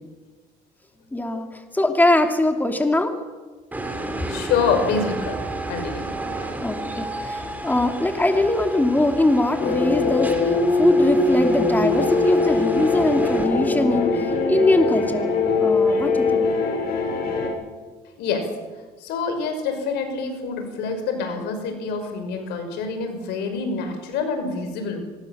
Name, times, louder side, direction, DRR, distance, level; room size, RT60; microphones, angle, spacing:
voice 1, 1.1-3.1 6.6-15.3 15.6-16.5, left 2 dB, 10° left, 4 dB, 2.7 m, -22 dB
sound 1, 3.7-13.4, right 1 dB, 10° right, 4.3 m, -32 dB
voice 2, 4.3-5.4 5.7-6.1 6.4-6.5 18.2-18.5 19.0-25.0, left 5 dB, 90° left, 6 dB, 5.8 m, -26 dB
sound 2, 9.6-17.5, left 3 dB, 70° left, 6.9 m, -21 dB
24.5 x 20.5 x 7.4 m, 1.3 s
cardioid pair, 110°, 17 cm